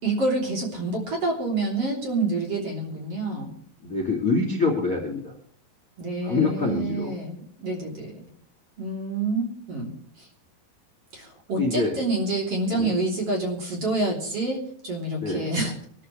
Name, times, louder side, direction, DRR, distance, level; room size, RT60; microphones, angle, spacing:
voice 1, 0.0-3.5 6.0-8.3 8.8-10.3 11.1-15.7, right 2 dB, 35° right, -1 dB, 3.8 m, -28 dB
voice 2, 3.8-5.3 6.2-7.1 11.6-12.0 12.7-13.0 15.2-15.5, left 3 dB, 25° left, 1 dB, 2.0 m, -25 dB
24.0 x 13.5 x 3.2 m, 0.62 s
omnidirectional pair, 4.8 m